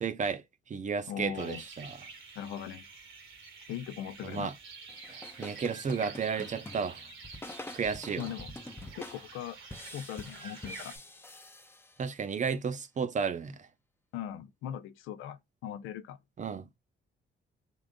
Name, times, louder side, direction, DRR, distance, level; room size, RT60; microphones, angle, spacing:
voice 1, 0.0-0.4 0.7-2.0 4.2-4.5 5.1-7.0 7.7-8.3 12.0-13.7 16.4-16.7, right 6 dB, 40° right, 0.6 m, -33 dB
voice 2, 1.1-1.6 2.4-2.9 3.7-4.5 8.2-8.5 8.9-9.6 9.9-10.9 14.1-16.2, left 10 dB, 90° left, 0.5 m, -39 dB
sound 1, 1.3-11.0, right 4 dB, 80° right, 1.4 m, -48 dB
sound 2, 4.9-12.3, left 2 dB, 10° left, 0.6 m, -47 dB
3.7 x 2.5 x 3.7 m
cardioid pair, 90°, 20 cm